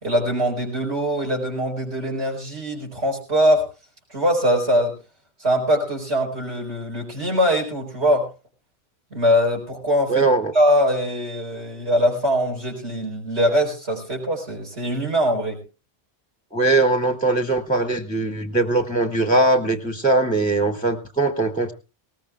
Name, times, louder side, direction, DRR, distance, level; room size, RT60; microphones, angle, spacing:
voice 1, 0.0-3.6 4.1-5.0 5.4-8.3 9.1-10.3 10.5-15.6, equal, 80° right, 0 dB, 4.8 m, -22 dB
voice 2, 10.1-10.5 16.5-21.7, right 2 dB, 10° left, 8 dB, 0.7 m, -20 dB
19.5 x 18.5 x 2.3 m, 0.30 s
omnidirectional pair, 1.1 m